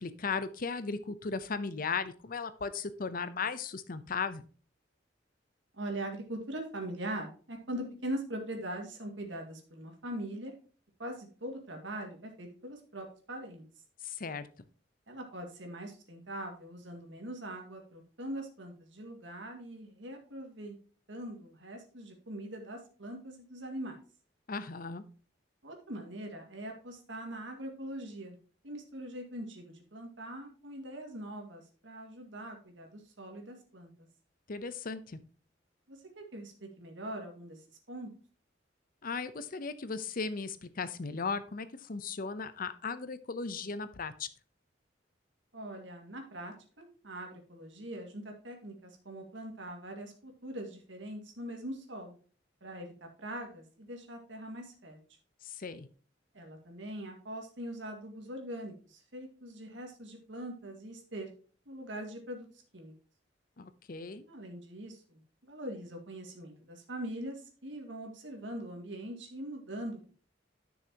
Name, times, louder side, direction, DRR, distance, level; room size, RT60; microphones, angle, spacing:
voice 1, 0.0-4.4 14.0-14.5 24.5-25.0 34.5-35.2 39.0-44.3 55.4-55.9 63.6-64.3, left 5 dB, 50° left, 13 dB, 0.7 m, -36 dB
voice 2, 5.7-10.5 11.0-13.6 15.1-20.8 21.1-24.0 25.6-28.4 28.6-34.1 35.9-37.6 37.9-38.1 45.5-52.2 52.6-55.0 56.3-61.3 61.7-62.5 62.7-62.9 64.3-65.0 65.4-70.2, right 1 dB, 80° right, 3 dB, 2.1 m, -42 dB
10.5 x 6.4 x 2.9 m, 0.39 s
head